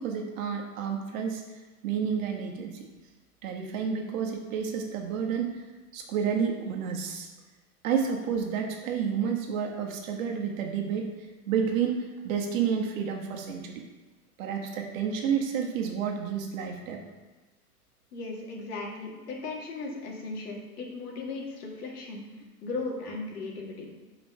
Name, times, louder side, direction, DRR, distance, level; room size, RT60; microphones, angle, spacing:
voice 1, 0.0-1.4 1.8-2.9 3.4-5.6 5.9-7.3 7.8-11.1 11.4-13.8 14.4-17.0, right 7 dB, 60° right, 2 dB, 1.4 m, -30 dB
voice 2, 18.1-22.2 22.6-23.9, left 3 dB, 75° left, -2 dB, 2.2 m, -37 dB
5.4 x 5.0 x 5.5 m, 1.2 s
hypercardioid pair, 125°, 46 cm